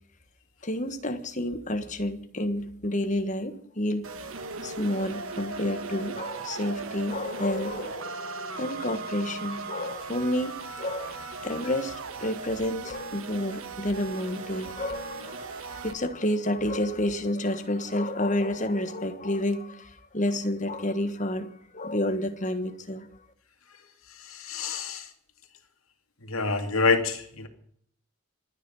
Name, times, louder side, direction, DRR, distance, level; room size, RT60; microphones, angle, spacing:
voice 1, 0.6-4.1 4.6-11.9 12.2-23.1, left 1 dB, 35° left, 8 dB, 1.5 m, -30 dB
sound 1, 4.0-15.9, right 4 dB, 75° right, 1.5 m, -38 dB
voice 2, 24.3-25.1 26.3-27.5, left 4 dB, 85° left, 5 dB, 2.4 m, -26 dB
26.0 x 10.0 x 5.5 m, 0.65 s
head